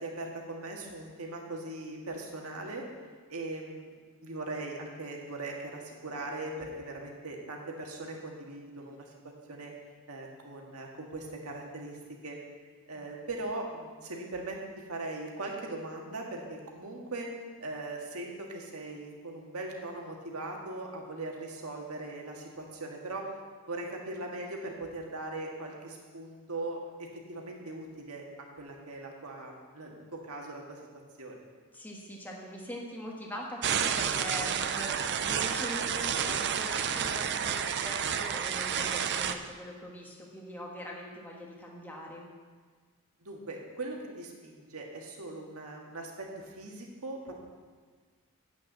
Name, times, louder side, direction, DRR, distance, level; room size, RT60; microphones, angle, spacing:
voice 1, 0.0-2.8 3.3-3.9 4.2-9.1 9.5-9.7 10.1-12.0 12.2-12.4 12.9-14.6 14.9-17.3 17.6-23.3 23.7-28.2 28.6-30.8 31.2-31.4 43.2-47.3, right 2 dB, 75° right, 0 dB, 1.8 m, -40 dB
voice 2, 31.7-42.3, equal, 10° left, -2 dB, 1.3 m, -42 dB
sound 1, 33.6-39.3, right 8 dB, 50° right, 0.5 m, -30 dB
8.3 x 6.6 x 8.3 m, 1.5 s
head